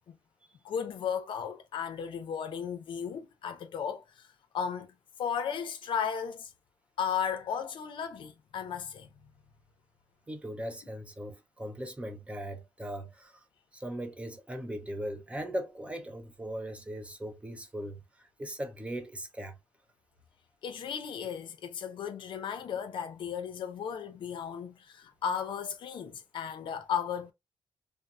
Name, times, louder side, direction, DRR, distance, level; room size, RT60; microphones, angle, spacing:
voice 1, 0.6-4.3 4.5-4.9 5.2-6.5 7.0-9.1 20.6-27.3, left 7 dB, 75° left, 0.6 m, -35 dB
voice 2, 10.3-13.4 13.7-19.5, equal, 15° right, 0.6 m, -39 dB
3.5 x 2.0 x 2.6 m
wide cardioid pair, 125°, 8 cm